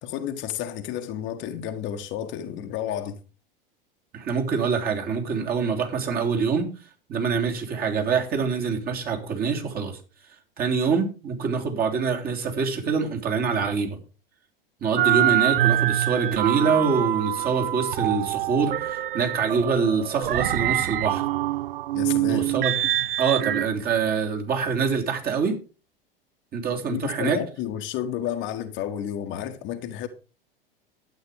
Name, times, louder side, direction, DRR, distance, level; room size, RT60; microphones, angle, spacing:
voice 1, 0.0-3.2 21.9-22.4 26.9-30.1, left 10 dB, 40° left, 1.5 m, -31 dB
voice 2, 4.1-6.7 7.1-10.0 10.6-14.0 14.8-21.2 22.3-22.7 23.2-25.6 26.5-27.4, right 5 dB, 30° right, 3.2 m, -25 dB
sound 1, 15.0-23.7, right 13 dB, 70° right, 0.6 m, -25 dB
12.0 x 8.8 x 4.9 m
figure-of-eight pair, 85°, 29 cm